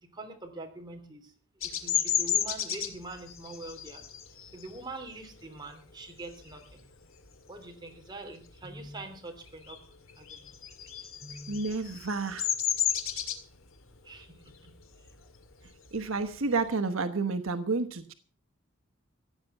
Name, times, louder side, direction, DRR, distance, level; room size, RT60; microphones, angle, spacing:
voice 1, 0.0-1.3 1.6-4.0 4.5-6.8 7.5-9.8 10.2-10.5 11.2-11.6 14.0-14.8, right 2 dB, 20° right, 3 dB, 3.2 m, -44 dB
Bird vocalization bird call bird song, 1.6-6.8 7.2-7.6 7.9-9.1 9.4-16.7, left 9 dB, 75° left, 2.2 m, -33 dB
voice 2, 11.5-12.5 15.9-18.1, right 4 dB, 80° right, 8 dB, 1.2 m, -30 dB
15.5 x 9.3 x 7.0 m, 0.42 s
head